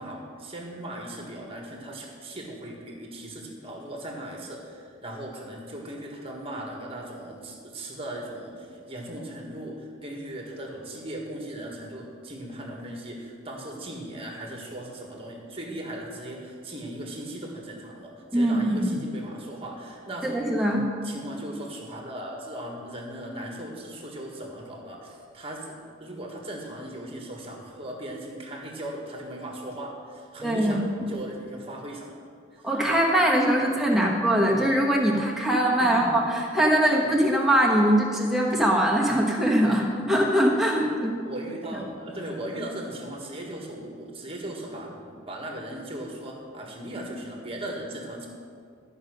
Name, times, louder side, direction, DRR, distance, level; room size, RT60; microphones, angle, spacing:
voice 1, 0.0-20.4 21.0-32.1 32.5-32.7 33.9-34.1 35.8-36.2 41.2-48.3, right 1 dB, 30° right, 0 dB, 1.5 m, -38 dB
voice 2, 18.3-18.9 20.2-20.8 30.4-30.8 32.6-41.2, right 1 dB, ahead, -3 dB, 1.3 m, -22 dB
12.5 x 5.3 x 6.6 m, 2.2 s
head